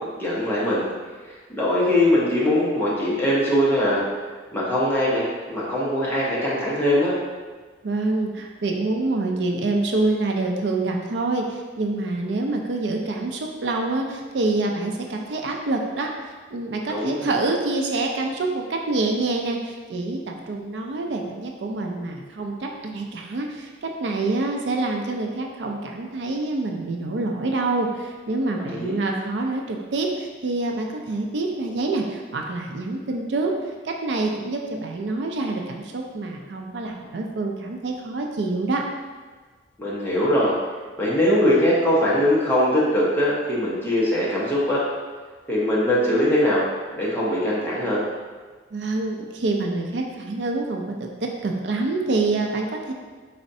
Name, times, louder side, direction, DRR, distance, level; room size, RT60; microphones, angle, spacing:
voice 1, 0.2-0.8 1.5-4.0 4.5-7.2 16.9-17.3 28.6-29.0 39.8-40.5 41.0-44.8 45.5-46.6 47.0-48.0, left 1 dB, 10° left, -7 dB, 1.0 m, -21 dB
voice 2, 7.8-33.5 33.8-38.8 48.7-52.9, right 2 dB, 65° right, 2 dB, 0.4 m, -26 dB
4.3 x 4.0 x 2.7 m, 1.4 s
head